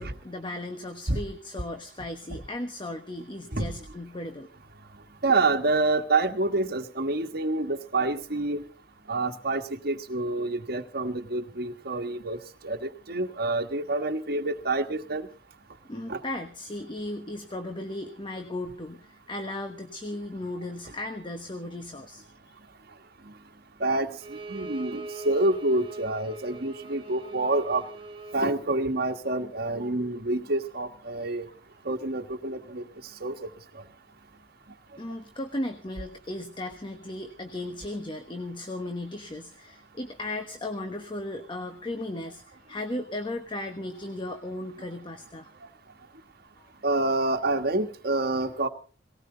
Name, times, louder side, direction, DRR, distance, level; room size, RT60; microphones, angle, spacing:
voice 1, 0.0-4.5 15.9-22.6 35.0-45.5 46.6-46.7, left 1 dB, 25° left, 6 dB, 1.2 m, -36 dB
voice 2, 5.2-8.6 9.1-12.4 12.6-15.3 16.1-16.2 23.8-27.8 28.3-31.5 31.8-32.8 33.2-33.5 33.7-33.8 46.8-48.7, right 2 dB, 55° right, 6 dB, 1.5 m, -27 dB
Bowed string instrument, 24.2-28.4, right 3 dB, 30° right, 2.1 m, -41 dB
18.5 x 18.5 x 3.9 m, 0.39 s
head